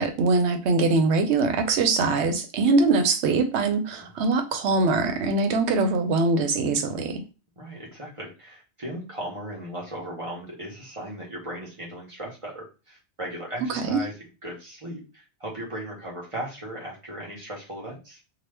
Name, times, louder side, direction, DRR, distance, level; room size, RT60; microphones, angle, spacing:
voice 1, 0.0-7.2 13.7-14.0, right 3 dB, 80° right, 6 dB, 0.9 m, -22 dB
voice 2, 7.6-14.1 14.4-18.2, right 1 dB, 30° right, -4 dB, 1.0 m, -37 dB
2.8 x 2.2 x 3.3 m, 0.32 s
omnidirectional pair, 1.2 m